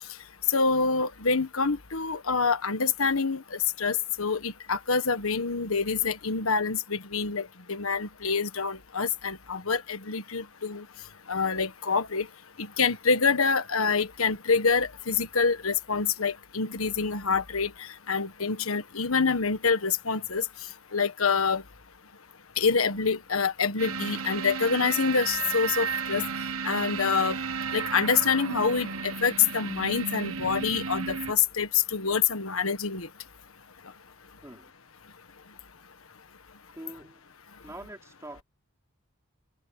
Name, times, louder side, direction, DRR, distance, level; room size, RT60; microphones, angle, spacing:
voice 1, 0.5-10.8 11.3-12.3 12.6-20.4 20.9-21.6 22.6-26.2 26.6-27.4 27.7-33.1, left 5 dB, 80° left, 1.5 m, -26 dB
sound 1, 23.8-31.3, right 5 dB, 85° right, 1.3 m, -33 dB
voice 2, 36.7-37.3 37.6-38.4, right 1 dB, 15° right, 5.1 m, -44 dB
head